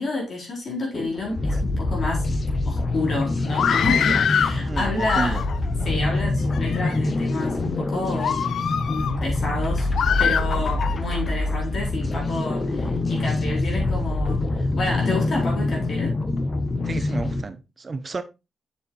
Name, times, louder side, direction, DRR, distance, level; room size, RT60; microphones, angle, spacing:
voice 1, 0.0-2.3 2.6-5.4 5.8-8.4 8.9-9.9 10.2-16.2, left 2 dB, 50° left, 4.3 m, -29 dB
sound 1, 0.9-17.4, left 2 dB, 30° left, 1.0 m, -25 dB
Screaming, 3.5-4.6 5.0-5.7 6.4-7.0 7.5-7.7 8.2-9.2 9.9-11.0, left 8 dB, 70° left, 0.5 m, -24 dB
voice 2, 4.6-5.4 16.9-18.2, right 3 dB, 30° right, 0.6 m, -31 dB
7.3 x 6.8 x 3.2 m
wide cardioid pair, 135°, 0 cm